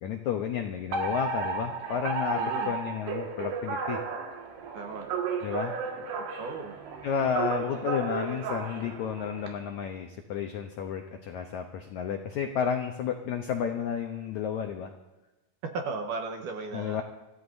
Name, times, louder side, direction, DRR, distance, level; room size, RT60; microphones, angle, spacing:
voice 1, 0.0-4.0 5.4-5.7 7.0-14.9 16.7-17.0, left 7 dB, 85° left, 4 dB, 1.6 m, -31 dB
Alarm, 0.9-9.5, right 4 dB, 90° right, 3.9 m, -33 dB
voice 2, 2.3-2.7 4.7-5.1 6.2-6.7 15.7-17.0, right 4 dB, 70° right, 4 dB, 2.2 m, -36 dB
25.5 x 14.5 x 2.6 m, 1.1 s
omnidirectional pair, 4.6 m